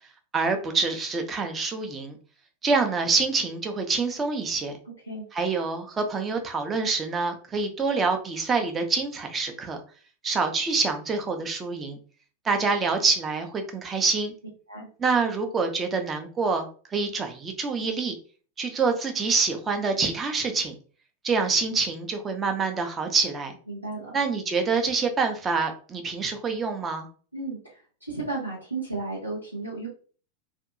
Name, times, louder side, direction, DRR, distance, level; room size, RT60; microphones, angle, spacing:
voice 1, 0.3-2.2 2.6-4.7 5.3-9.8 10.2-12.0 12.4-14.3 15.0-18.1 18.6-20.7 21.2-23.5 24.1-27.1, right 4 dB, 20° right, 5 dB, 0.5 m, -26 dB
voice 2, 23.7-24.2 27.3-29.9, right 3 dB, 90° right, -7 dB, 0.8 m, -34 dB
2.6 x 2.3 x 2.5 m, 0.40 s
figure-of-eight pair, 90°, 0 cm